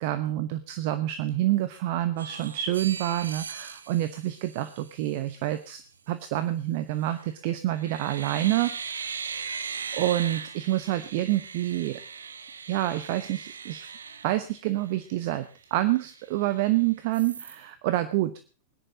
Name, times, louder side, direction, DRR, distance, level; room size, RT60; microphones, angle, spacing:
voice 1, 0.0-5.8 6.1-9.1 9.4-9.6 9.9-12.0 12.7-13.9 14.2-18.3, right 14 dB, 50° right, 11 dB, 1.0 m, -27 dB
sound 1, 2.2-5.2 7.0-7.4 7.7-15.0 15.4-15.5 15.8-16.7 17.1-17.6, right 6 dB, 70° right, 0.8 m, -39 dB
20.0 x 10.0 x 5.0 m, 0.37 s
figure-of-eight pair, 90°, 0 cm